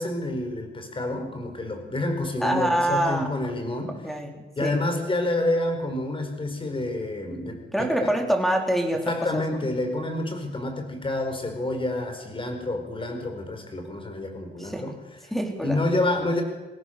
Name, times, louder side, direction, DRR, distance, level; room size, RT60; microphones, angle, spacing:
voice 1, 0.0-3.9 4.6-8.1 9.0-14.9 15.6-16.4, left 1 dB, 25° left, 5 dB, 5.0 m, -28 dB
voice 2, 2.4-3.3 4.0-4.3 4.6-4.8 7.7-9.1 14.6-14.8 15.3-15.8, right 1 dB, ahead, 3 dB, 3.9 m, -25 dB
22.5 x 17.0 x 6.8 m, 1.2 s
cardioid pair, 90°, 20 cm